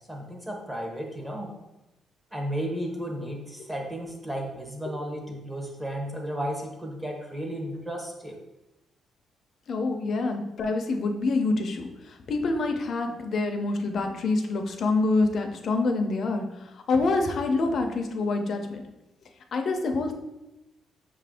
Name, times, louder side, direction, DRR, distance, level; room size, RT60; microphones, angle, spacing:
voice 1, 0.1-1.5 2.3-8.4, equal, 5° right, 1 dB, 0.7 m, -34 dB
voice 2, 9.7-11.9 12.3-16.4 16.9-18.8 19.5-20.1, left 3 dB, 45° left, 5 dB, 0.5 m, -26 dB
6.1 x 2.5 x 3.5 m, 0.98 s
cardioid pair, 160°, 0 cm